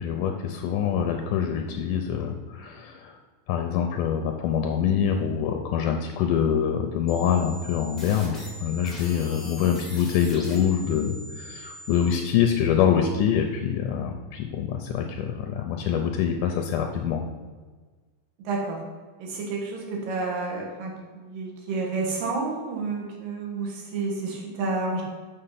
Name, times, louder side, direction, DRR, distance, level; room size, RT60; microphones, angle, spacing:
voice 1, 0.0-3.2 3.5-17.2, left 8 dB, 80° left, 4 dB, 2.0 m, -25 dB
sound 1, 7.1-12.1, equal, ahead, 0.3 m, -42 dB
voice 2, 18.4-18.8 19.2-25.0, right 3 dB, 75° right, -1 dB, 3.2 m, -30 dB
6.7 x 6.6 x 5.7 m, 1.4 s
omnidirectional pair, 4.1 m